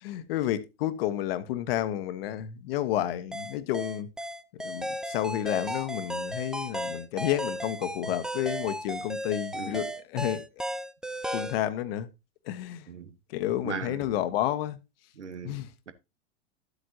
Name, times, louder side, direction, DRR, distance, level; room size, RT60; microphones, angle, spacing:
voice 1, 0.0-4.1 4.6-10.4 11.3-12.1 12.5-12.9 13.3-14.8 15.4-15.7, left 12 dB, 55° left, 1.3 m, -30 dB
sound 1, 3.3-11.6, equal, ahead, 0.4 m, -35 dB
voice 2, 13.6-14.2 15.2-15.9, right 7 dB, 85° right, 1.3 m, -39 dB
12.0 x 8.1 x 2.7 m
hypercardioid pair, 100°, 35 cm